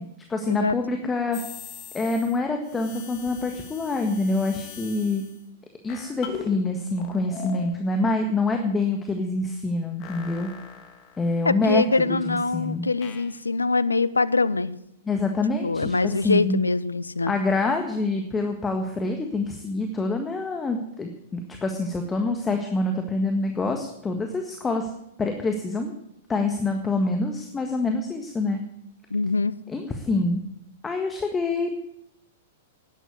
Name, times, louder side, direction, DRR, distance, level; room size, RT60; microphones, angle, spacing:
voice 1, 0.0-1.4 1.9-5.2 5.8-10.5 11.2-12.9 15.0-16.6 17.3-24.9 25.2-25.9 26.3-28.6 29.7-30.4 30.8-31.7, left 3 dB, 15° left, 4 dB, 1.6 m, -26 dB
sound 1, 1.3-2.4 2.6-5.4 5.9-6.6 7.0-7.7 10.0-11.5 13.0-13.4, left 8 dB, 40° left, 2.5 m, -41 dB
voice 2, 11.4-14.7 15.6-17.3 29.1-29.6, left 3 dB, 90° left, 18 dB, 0.7 m, -23 dB
12.0 x 9.9 x 9.5 m, 0.81 s
hypercardioid pair, 105°, 0 cm